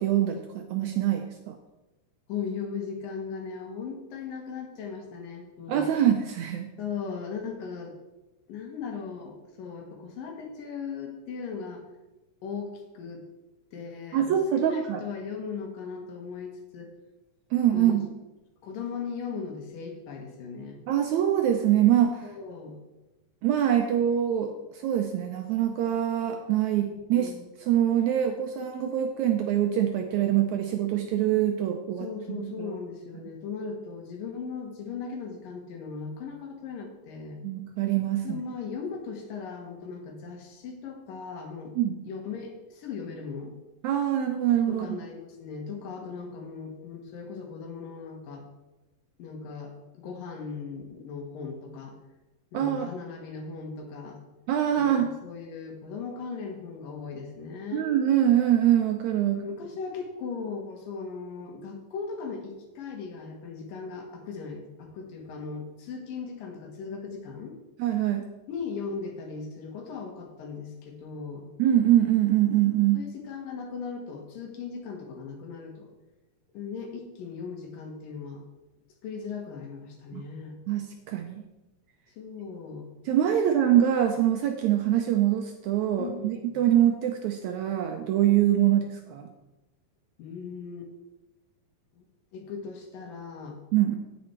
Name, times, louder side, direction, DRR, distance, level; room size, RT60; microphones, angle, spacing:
voice 1, 0.0-1.6 5.7-6.7 14.1-15.0 17.5-18.1 20.9-22.3 23.4-27.3 27.6-32.7 37.4-38.4 41.7-42.0 43.8-44.9 52.5-52.9 54.5-55.1 57.7-59.4 67.8-68.2 71.6-73.0 80.1-80.2 80.7-81.4 83.1-89.3 93.7-94.0, right 11 dB, 80° right, 5 dB, 1.7 m, -24 dB
voice 2, 2.3-5.9 6.8-7.9 8.5-11.8 12.4-13.2 13.7-14.4 14.6-16.9 17.7-18.0 18.6-20.8 22.2-22.8 27.1-27.5 32.0-37.4 38.2-41.7 42.0-43.6 44.7-48.4 49.2-51.9 52.5-54.2 54.8-57.9 59.2-67.5 68.5-71.5 72.9-75.9 76.5-78.4 79.0-80.6 82.2-82.9 86.0-86.6 90.2-90.9 91.9-92.0 92.3-93.6, left 5 dB, 80° left, 2 dB, 3.2 m, -38 dB
9.5 x 8.7 x 4.4 m, 1.0 s
omnidirectional pair, 3.9 m